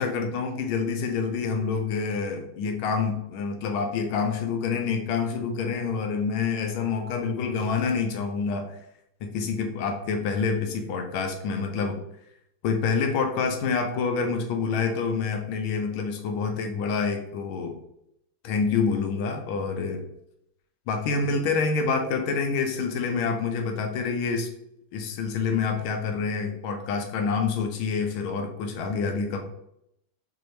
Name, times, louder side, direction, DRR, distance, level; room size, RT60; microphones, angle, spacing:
voice 1, 0.0-8.7 9.2-12.0 12.6-17.7 18.4-20.0 20.9-24.5 24.9-29.4, left 5 dB, 85° left, 4 dB, 1.4 m, -27 dB
6.3 x 2.7 x 3.1 m, 0.77 s
omnidirectional pair, 2.3 m